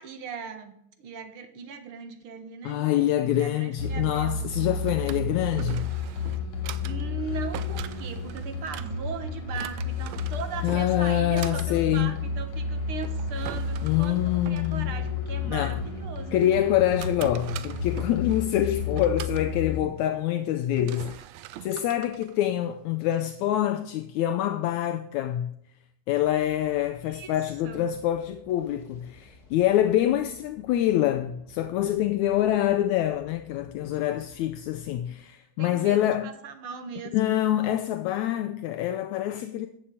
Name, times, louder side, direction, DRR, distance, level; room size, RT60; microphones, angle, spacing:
voice 1, 0.0-4.4 6.8-16.5 27.0-27.3 27.6-27.8 35.6-37.1, right 6 dB, 50° right, 2.1 m, -39 dB
voice 2, 2.6-5.9 10.6-12.1 13.8-14.9 15.4-15.8 16.3-21.2 21.6-25.5 26.1-36.3 37.1-39.7, left 12 dB, 80° left, 2.0 m, -26 dB
sound 1, 3.8-19.8, left 4 dB, 55° left, 3.5 m, -31 dB
Drawer open or close, 4.5-23.1, right 13 dB, 75° right, 1.8 m, -44 dB
sound 2, 26.2-35.1, left 3 dB, 30° left, 3.1 m, -54 dB
14.0 x 7.7 x 8.6 m
omnidirectional pair, 3.4 m